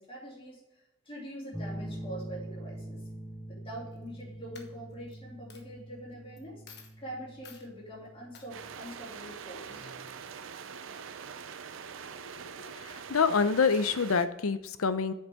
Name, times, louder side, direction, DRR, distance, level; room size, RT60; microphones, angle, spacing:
voice 1, 0.0-3.0 3.5-6.6 7.0-10.3, right 1 dB, 25° left, -4 dB, 2.8 m, -44 dB
sound 1, 1.5-8.8, right 1 dB, 10° left, 0.6 m, -44 dB
Coin (dropping), 3.9-4.2 4.5-5.1 5.5-5.6 6.4-6.5 6.7-7.0 7.4-7.7 8.3-8.5, left 6 dB, 50° left, 1.1 m, -51 dB
sound 2, 8.5-14.3, right 6 dB, 60° right, 0.5 m, -44 dB
voice 2, 12.6-15.1, left 5 dB, 80° left, 12 dB, 0.6 m, -27 dB
8.1 x 6.7 x 3.6 m, 0.91 s
head